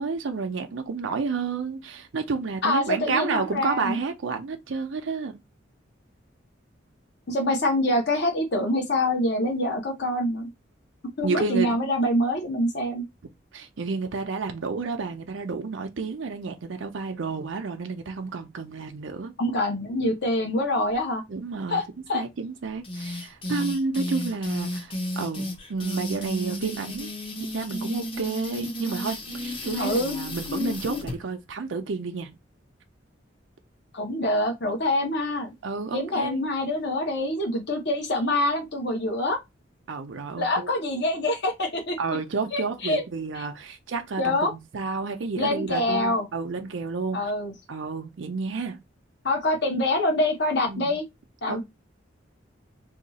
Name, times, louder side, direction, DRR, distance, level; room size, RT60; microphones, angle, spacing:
voice 1, 0.0-5.4 11.2-11.8 13.5-19.3 21.3-21.8 22.1-27.1 27.4-32.3 35.6-36.4 39.9-40.7 42.0-47.3 47.7-48.8 50.7-50.9 51.5-51.6, right 4 dB, 75° right, 0.5 m, -30 dB
voice 2, 2.6-4.0 7.3-10.5 11.2-13.0 19.4-21.2 21.7-22.2 29.8-30.1 33.9-35.5 35.9-39.4 40.4-42.0 42.5-43.0 44.2-44.5 45.4-46.3 47.1-47.5 49.2-51.0 51.4-51.6, left 1 dB, 60° left, 1.0 m, -25 dB
sound 1, 22.8-31.1, left 1 dB, 30° left, 0.8 m, -32 dB
2.7 x 2.4 x 4.0 m
head